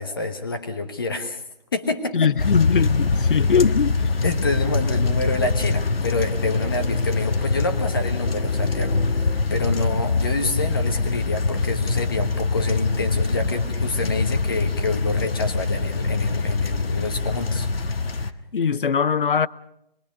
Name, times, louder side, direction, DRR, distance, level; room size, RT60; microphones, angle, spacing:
voice 1, 0.0-1.4 1.7-2.3 4.2-17.7 18.2-18.3, left 3 dB, 25° left, 1.3 m, -27 dB
voice 2, 2.1-4.0 18.5-19.5, left 6 dB, 65° left, 0.8 m, -21 dB
sound 1, 2.4-18.3, left 3 dB, 85° left, 1.5 m, -23 dB
25.5 x 21.5 x 5.3 m
hypercardioid pair, 170°, 29 cm